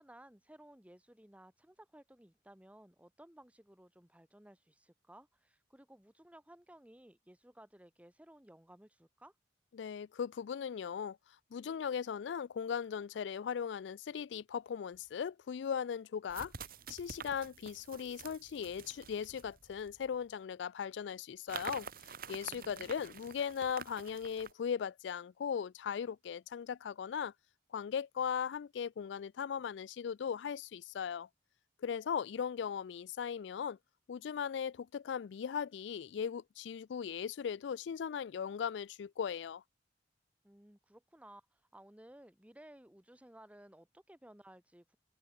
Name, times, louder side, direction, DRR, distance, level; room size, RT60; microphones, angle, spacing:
voice 1, 0.0-9.3 22.5-23.1 40.4-45.0, right 1 dB, 10° right, 1.8 m, -58 dB
voice 2, 9.7-11.2 11.5-16.5 16.9-21.9 22.3-27.3 27.7-31.3 31.8-33.8 34.1-39.6, left 7 dB, 70° left, 0.4 m, -38 dB
sound 1, 14.9-15.0 16.3-20.1 21.5-24.5, right 6 dB, 55° right, 2.5 m, -48 dB
head